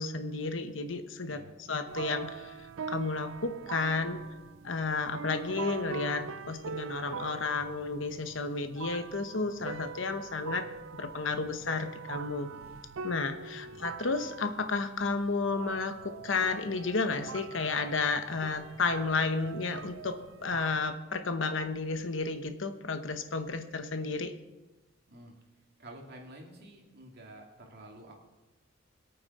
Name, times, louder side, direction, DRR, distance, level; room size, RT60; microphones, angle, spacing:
voice 1, 0.0-4.2 4.6-10.7 10.9-12.5 13.0-24.3, left 4 dB, 70° left, 9 dB, 1.0 m, -32 dB
sound 1, 1.9-20.8, right 6 dB, 90° right, 0.5 m, -43 dB
voice 2, 25.8-28.2, right 1 dB, 55° right, 0 dB, 2.4 m, -50 dB
22.0 x 8.9 x 4.2 m, 1.1 s
head